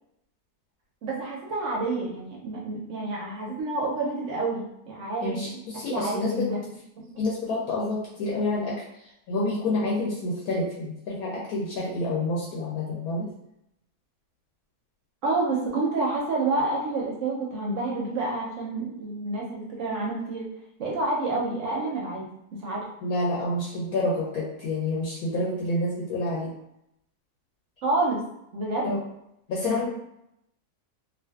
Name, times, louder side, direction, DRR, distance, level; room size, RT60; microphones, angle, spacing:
voice 1, 1.0-5.6 5.9-6.6 7.0-7.1 15.2-20.5 20.8-22.3 22.6-22.8 27.8-28.2 28.5-28.9 29.8-29.9, right 2 dB, 65° right, -3 dB, 0.8 m, -28 dB
voice 2, 5.2-6.5 7.2-8.8 9.3-13.3 23.0-26.5 28.8-29.0 29.5-29.9, left 2 dB, 75° left, -4 dB, 1.0 m, -28 dB
2.5 x 2.4 x 2.3 m, 0.79 s
omnidirectional pair, 1.7 m